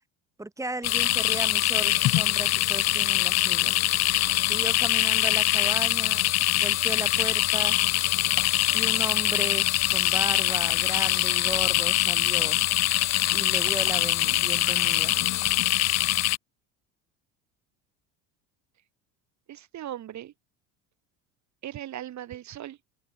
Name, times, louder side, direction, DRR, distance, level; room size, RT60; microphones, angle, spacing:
voice 1, 0.4-3.8 4.4-6.2 6.6-7.8 8.7-12.6 13.3-15.3, right 2 dB, 10° right, 1.7 m, -36 dB
sound 1, 0.8-16.4, left 16 dB, 40° left, 0.6 m, -23 dB
voice 2, 19.5-20.3 21.6-22.8, right 12 dB, 45° right, 2.5 m, -38 dB
open air
supercardioid pair, 105°, 39 cm